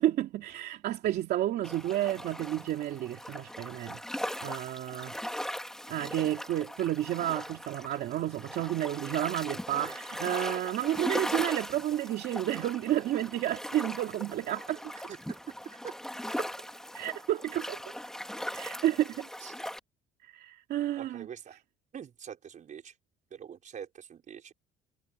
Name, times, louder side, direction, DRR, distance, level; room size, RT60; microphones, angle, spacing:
voice 1, 0.0-4.0 4.4-5.1 5.9-14.8 16.4-16.5 16.9-17.8 18.5-19.3 20.2-21.3, right 13 dB, 70° right, 2.6 m, -31 dB
sound 1, 1.6-19.8, equal, 5° left, 2.2 m, -39 dB
voice 2, 15.1-15.9 19.4-19.6 21.0-21.6 21.9-22.9 23.3-24.5, right 8 dB, 50° right, 5.7 m, -45 dB
cardioid pair, 110°, 17 cm